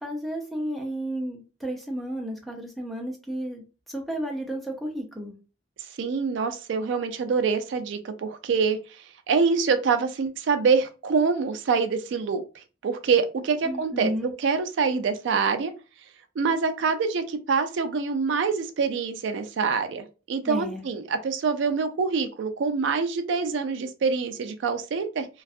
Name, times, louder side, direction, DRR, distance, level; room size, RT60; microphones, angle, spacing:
voice 1, 0.0-3.6 3.9-5.3 13.6-14.3 20.5-20.8, right 1 dB, ahead, 0 dB, 0.5 m, -32 dB
voice 2, 6.0-8.8 9.3-12.4 12.8-14.1 14.4-15.7 16.4-25.3, right 5 dB, 70° right, 8 dB, 0.3 m, -25 dB
2.5 x 2.3 x 2.4 m, 0.32 s
head